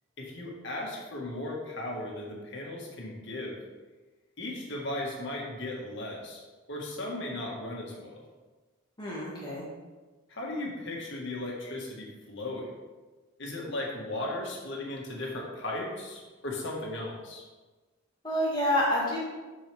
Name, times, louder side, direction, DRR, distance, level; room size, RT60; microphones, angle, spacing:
voice 1, 0.2-3.6 4.4-6.4 6.7-8.2 10.3-12.7 13.4-17.4, left 1 dB, 55° left, -2 dB, 1.7 m, -36 dB
voice 2, 9.0-9.6 18.2-19.2, left 1 dB, 20° left, -6 dB, 2.1 m, -28 dB
9.9 x 4.7 x 3.5 m, 1.3 s
head